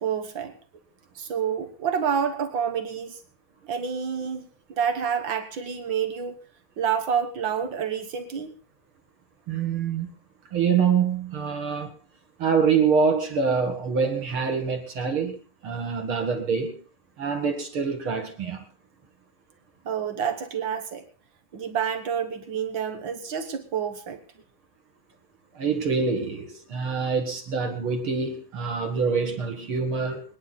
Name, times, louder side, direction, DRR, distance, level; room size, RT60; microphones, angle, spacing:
voice 1, 0.0-0.5 1.1-3.2 3.7-6.4 6.8-8.5 19.8-21.0 21.5-24.2, right 7 dB, 80° right, 1.0 m, -28 dB
voice 2, 9.5-10.1 10.5-11.9 12.4-15.3 15.6-16.8 17.2-18.6 25.5-30.2, right 5 dB, 45° right, 2.1 m, -25 dB
26.5 x 10.0 x 4.1 m
omnidirectional pair, 4.2 m